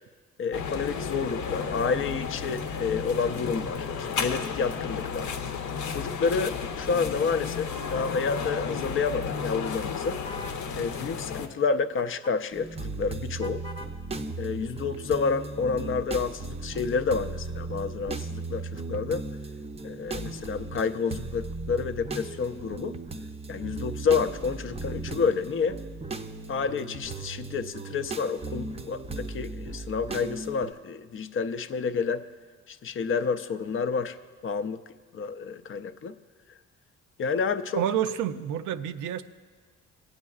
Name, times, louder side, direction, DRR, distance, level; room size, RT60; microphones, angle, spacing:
voice 1, 0.4-5.3 5.9-10.2 10.8-13.6 14.4-19.2 19.8-23.0 23.5-25.8 26.5-32.2 32.7-34.2 34.4-34.8 35.1-36.1 37.2-37.8, left 5 dB, 45° left, 11 dB, 0.5 m, -29 dB
sound 1, 0.5-11.5, left 6 dB, 75° left, 0.8 m, -33 dB
sound 2, 10.2-10.6 12.0-12.4 13.4-14.0, left 3 dB, 15° left, 1.0 m, -41 dB
sound 3, 12.5-30.7, right 3 dB, 20° right, 0.5 m, -37 dB
voice 2, 37.8-39.2, right 9 dB, 80° right, 11 dB, 0.5 m, -28 dB
20.5 x 8.6 x 2.4 m, 1.5 s
cardioid pair, 90°, 30 cm